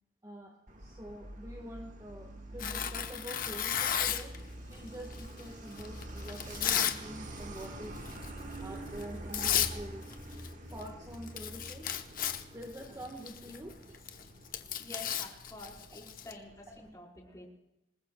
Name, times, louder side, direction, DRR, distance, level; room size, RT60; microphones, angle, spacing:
voice 1, 0.2-4.4 4.7-8.0 8.6-10.1 10.7-11.9 12.5-13.8 15.6-15.7, equal, 20° right, 2 dB, 1.5 m, -46 dB
Truck, 0.7-16.9, right 1 dB, 45° right, 1.5 m, -46 dB
Tearing, 2.6-4.4 5.1-7.0 7.3-7.7 8.1-8.3 9.0-9.1 9.3-9.7 10.0-10.5 10.8-10.9 11.1-16.3, left 9 dB, 50° left, 0.9 m, -33 dB
voice 2, 14.8-17.5, left 2 dB, 20° left, -2 dB, 4.4 m, -48 dB
27.0 x 19.5 x 2.3 m, 0.91 s
head